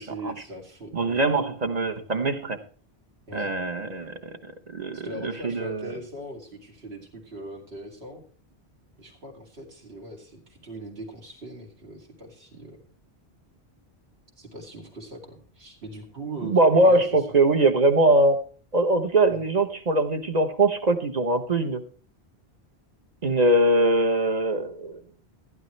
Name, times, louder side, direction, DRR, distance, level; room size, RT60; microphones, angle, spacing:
voice 1, 0.0-1.3 3.3-3.5 4.9-8.2 9.0-12.8 14.4-16.6 16.8-17.4 19.3-19.4, right 1 dB, 70° right, 1 dB, 2.7 m, -40 dB
voice 2, 0.9-2.6 3.3-5.9 16.4-18.4 18.7-21.8 23.2-25.0, right 2 dB, 40° right, 7 dB, 1.1 m, -22 dB
14.5 x 10.5 x 3.2 m, 0.43 s
omnidirectional pair, 1.1 m